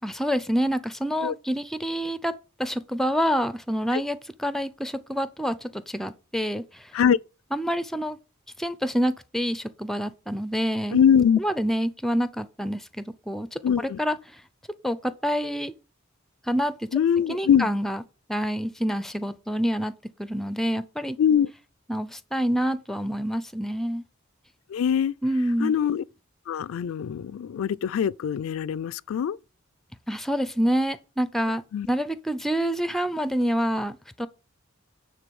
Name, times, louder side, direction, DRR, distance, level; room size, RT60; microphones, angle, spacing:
voice 1, 0.0-2.3 2.6-6.9 7.5-8.2 8.6-11.0 11.4-14.2 14.8-15.7 16.5-16.9 17.3-18.0 18.3-19.9 20.2-21.2 21.9-24.0 25.2-25.8 30.1-31.6 31.9-34.3, equal, ahead, 0.5 m, -27 dB
voice 2, 10.9-11.4 13.6-14.0 16.9-17.7 21.2-21.5 24.7-25.1 25.6-26.0 26.5-29.4 31.7-31.9, left 8 dB, 70° left, 0.3 m, -22 dB
9.2 x 3.8 x 6.9 m
head